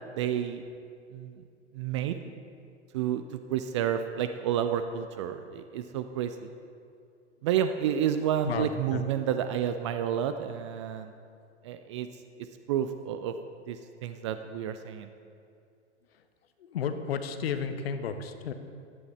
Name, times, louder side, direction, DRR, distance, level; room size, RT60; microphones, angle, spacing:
voice 1, 0.1-0.6 1.1-1.4 1.7-2.2 2.9-3.2 3.5-6.5 7.4-11.1 11.6-12.1 12.7-13.3 13.7-15.1, right 9 dB, 25° right, 9 dB, 0.4 m, -30 dB
voice 2, 8.5-9.0 16.1-16.2 16.6-18.5, left 6 dB, 60° left, 9 dB, 0.9 m, -33 dB
15.0 x 10.5 x 3.3 m, 2.4 s
figure-of-eight pair, 95°, 35 cm